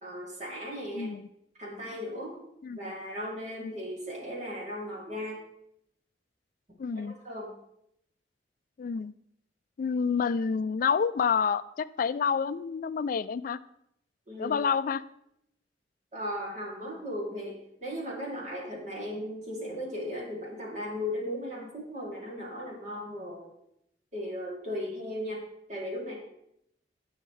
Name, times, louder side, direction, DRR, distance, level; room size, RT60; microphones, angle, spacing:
voice 1, 0.0-1.1 1.6-2.4 2.7-5.4 7.2-7.5 14.3-14.6 16.1-23.5 24.1-25.4 25.7-26.2, equal, 40° right, -2 dB, 3.0 m, -36 dB
voice 2, 0.9-1.3 2.6-2.8 3.6-3.7 6.8-7.2 8.8-9.1 9.8-13.6 14.4-15.0, left 6 dB, 50° left, 13 dB, 0.3 m, -28 dB
17.5 x 6.4 x 3.3 m, 0.77 s
head